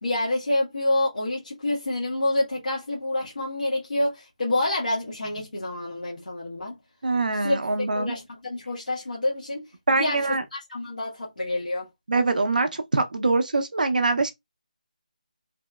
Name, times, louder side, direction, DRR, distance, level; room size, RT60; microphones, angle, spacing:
voice 1, 0.0-6.8 7.3-7.6 7.9-10.2 10.5-11.9, left 1 dB, 70° left, 1.5 m, -27 dB
voice 2, 7.0-8.1 9.9-10.4 12.1-14.3, right 3 dB, 75° right, 0.6 m, -23 dB
3.4 x 3.0 x 2.3 m
figure-of-eight pair, 175°, 4 cm